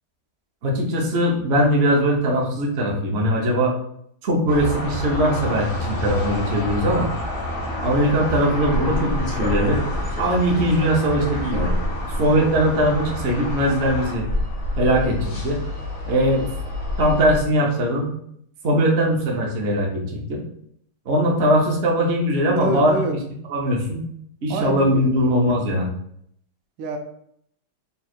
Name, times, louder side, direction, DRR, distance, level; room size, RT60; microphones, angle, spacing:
voice 1, 0.6-3.7 4.2-7.1 7.8-9.8 10.2-11.7 12.2-14.3 14.8-15.6 16.1-16.5 17.0-18.1 18.6-20.4 21.1-22.9 23.5-24.0 24.4-25.9, equal, 60° right, -1 dB, 0.6 m, -20 dB
sound 1, 4.5-17.4, left 1 dB, 55° left, 0.6 m, -27 dB
voice 2, 22.5-23.2 24.5-25.3 26.8-27.0, right 3 dB, 80° right, 4 dB, 1.3 m, -27 dB
3.6 x 2.4 x 4.2 m, 0.70 s
omnidirectional pair, 2.2 m